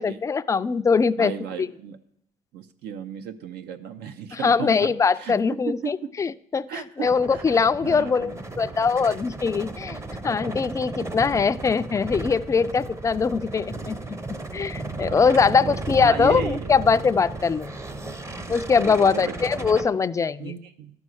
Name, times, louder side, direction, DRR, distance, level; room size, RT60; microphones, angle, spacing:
voice 1, 0.0-1.3 4.3-6.7 7.0-14.0 14.5-17.7 18.5-20.6, left 5 dB, 20° left, 12 dB, 0.3 m, -22 dB
voice 2, 1.2-2.0 2.5-5.3 5.8-5.9 6.7-8.4 15.0-16.7 18.7-19.3 20.4-20.9, right 7 dB, 80° right, 9 dB, 0.8 m, -35 dB
sound 1, 7.0-19.9, right 2 dB, 15° right, 0.7 m, -35 dB
12.0 x 5.4 x 6.3 m, 0.73 s
cardioid pair, 110°, 17 cm